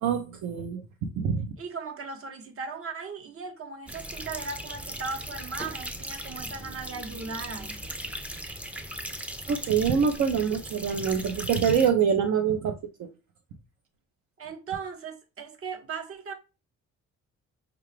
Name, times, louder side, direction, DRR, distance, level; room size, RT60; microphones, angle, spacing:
voice 1, 0.0-1.5 9.5-13.1, right 7 dB, 70° right, 0.6 m, -25 dB
voice 2, 1.6-7.8 14.4-16.3, right 4 dB, 50° right, 0.9 m, -37 dB
sound 1, 3.9-11.9, right 1 dB, 5° right, 0.4 m, -38 dB
4.8 x 2.3 x 3.2 m
cardioid pair, 90°, 30 cm